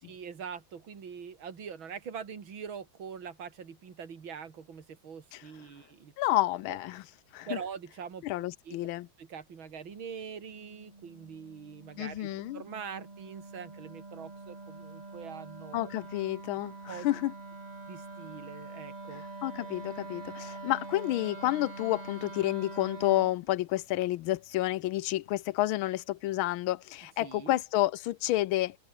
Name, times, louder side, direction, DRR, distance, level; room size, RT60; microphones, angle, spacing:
voice 1, 0.0-6.4 6.7-6.8 7.5-8.8 9.2-15.9 16.9-17.1 17.9-19.2 27.2-27.6, right 6 dB, 75° right, 3.2 m, -43 dB
voice 2, 6.2-7.0 7.3-7.6 8.2-9.1 12.0-12.6 15.7-17.3 19.4-28.8, left 15 dB, 90° left, 1.5 m, -30 dB
Wind instrument woodwind instrument, 10.4-23.4, right 3 dB, 20° right, 1.7 m, -45 dB
omnidirectional pair, 2.2 m